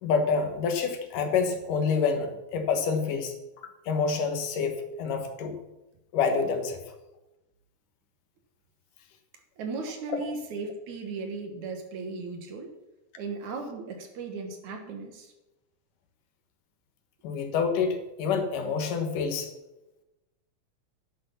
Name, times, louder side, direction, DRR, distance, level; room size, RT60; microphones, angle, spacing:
voice 1, 0.0-3.3 3.9-5.5 6.1-6.8 17.2-19.5, left 5 dB, 80° left, 6 dB, 3.1 m, -27 dB
voice 2, 9.6-12.7 13.2-15.3, right 4 dB, 65° right, 4 dB, 3.0 m, -36 dB
11.0 x 10.5 x 5.7 m, 0.99 s
omnidirectional pair, 3.7 m